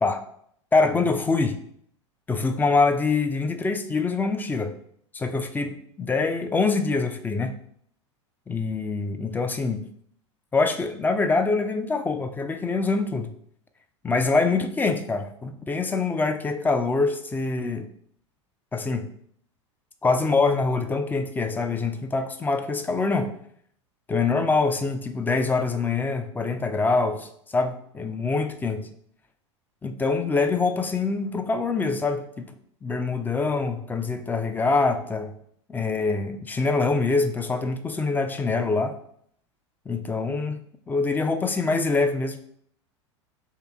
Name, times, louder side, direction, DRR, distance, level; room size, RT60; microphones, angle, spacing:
voice 1, 0.7-1.6 2.3-4.7 5.1-7.5 8.5-9.9 10.5-13.3 14.0-17.9 18.7-19.1 20.0-23.3 24.1-28.9 29.8-32.5 32.8-35.3 35.7-39.0 39.9-40.6 40.9-42.4, left 3 dB, 10° left, 7 dB, 0.4 m, -24 dB
3.3 x 2.8 x 4.6 m, 0.66 s
figure-of-eight pair, 85°, 16 cm